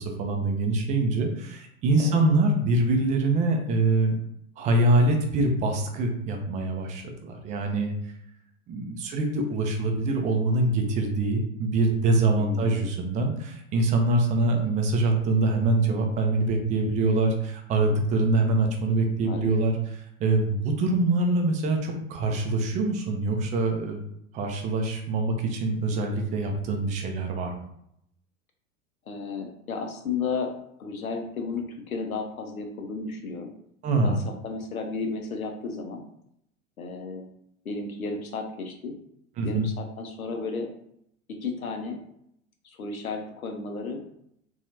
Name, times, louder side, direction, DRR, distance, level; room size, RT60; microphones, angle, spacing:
voice 1, 0.0-4.1 4.6-7.9 8.7-24.0 24.3-27.5 33.8-34.2 39.4-39.7, right 2 dB, 20° right, 3 dB, 0.4 m, -24 dB
voice 2, 12.4-12.8 19.3-19.5 29.1-30.5 30.8-33.5 34.4-36.0 36.8-37.3 37.6-38.9 39.4-40.7 41.4-42.0 42.6-44.0, left 4 dB, 90° left, 4 dB, 0.6 m, -33 dB
2.7 x 2.3 x 2.6 m, 0.73 s
figure-of-eight pair, 85°, 41 cm